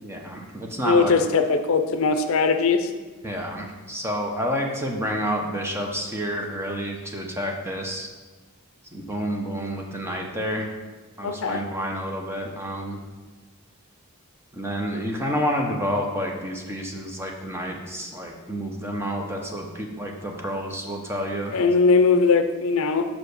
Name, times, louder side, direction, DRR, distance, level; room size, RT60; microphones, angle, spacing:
voice 1, 0.0-1.2 3.2-8.1 8.9-10.7 11.2-13.0 14.5-21.6, equal, 10° right, 1 dB, 0.9 m, -29 dB
voice 2, 0.8-2.9 11.2-11.6 21.5-23.0, left 4 dB, 65° left, 7 dB, 0.5 m, -20 dB
5.8 x 4.9 x 6.6 m, 1.3 s
head